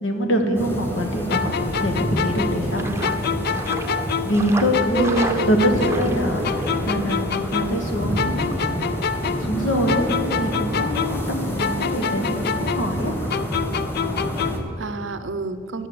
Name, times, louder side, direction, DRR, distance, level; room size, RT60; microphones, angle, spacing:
voice 1, 0.0-2.9 4.2-5.1 5.5-8.7 9.2-13.1, equal, 85° left, 4 dB, 1.4 m, -24 dB
sound 1, 0.5-14.6, equal, 10° left, 1.4 m, -28 dB
sound 2, 1.3-4.5 4.7-7.9 8.2-11.3 11.6-14.7, left 6 dB, 55° left, 0.4 m, -27 dB
sound 3, 1.3-13.5, right 2 dB, 15° right, 0.7 m, -38 dB
voice 2, 5.0-6.3 14.4-15.9, right 3 dB, 80° right, 11 dB, 0.6 m, -27 dB
11.0 x 7.5 x 6.7 m, 2.5 s
head